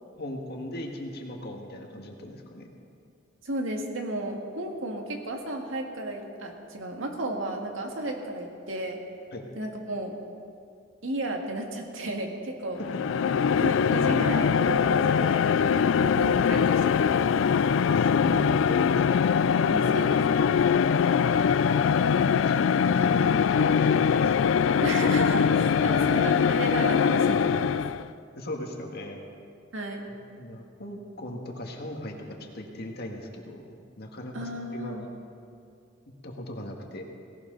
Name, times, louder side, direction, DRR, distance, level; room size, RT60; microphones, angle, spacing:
voice 1, 0.1-2.7 9.3-9.4 12.8-13.0 17.8-19.2 21.9-24.4 25.8-26.1 28.3-29.2 30.3-32.1 32.5-35.1 36.2-37.0, left 1 dB, 55° left, 1 dB, 1.8 m, -38 dB
voice 2, 3.4-9.0 9.5-10.1 11.0-12.8 13.5-17.3 19.6-20.2 24.8-27.8 29.7-30.0 34.3-35.0, right 1 dB, 90° right, 2 dB, 1.8 m, -33 dB
sound 1, 12.8-28.1, left 7 dB, 70° left, 0.3 m, -22 dB
17.5 x 17.5 x 3.9 m, 2.4 s
head